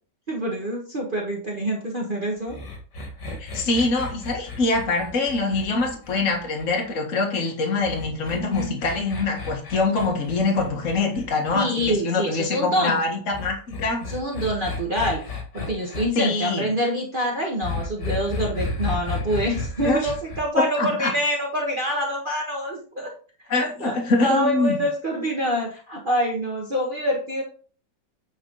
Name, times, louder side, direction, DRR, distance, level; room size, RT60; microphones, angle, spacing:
voice 1, 0.3-2.6 8.4-8.8 11.5-13.0 14.1-23.1 23.6-27.4, equal, 30° right, -2 dB, 1.6 m, -26 dB
sound 1, 2.5-6.9 7.8-12.0 13.3-16.0 17.6-20.4, left 3 dB, 70° left, 2.5 m, -33 dB
voice 2, 3.4-14.1 16.1-16.7 19.8-20.1 20.6-21.1 23.5-24.8, left 3 dB, 45° left, 1 dB, 1.9 m, -24 dB
9.7 x 4.4 x 4.0 m, 0.39 s
omnidirectional pair, 1.9 m